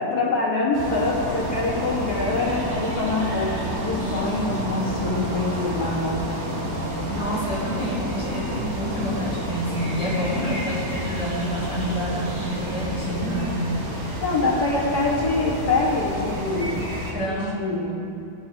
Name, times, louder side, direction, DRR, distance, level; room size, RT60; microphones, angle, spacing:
voice 1, 0.0-6.4 14.2-16.8 17.1-17.9, left 3 dB, 65° left, -3 dB, 2.6 m, -25 dB
sound 1, 0.7-17.1, equal, 40° right, 2.2 m, -30 dB
voice 2, 7.1-13.7 17.1-17.6, equal, 45° left, -5 dB, 3.7 m, -28 dB
17.5 x 6.9 x 4.8 m, 2.8 s
omnidirectional pair, 1.9 m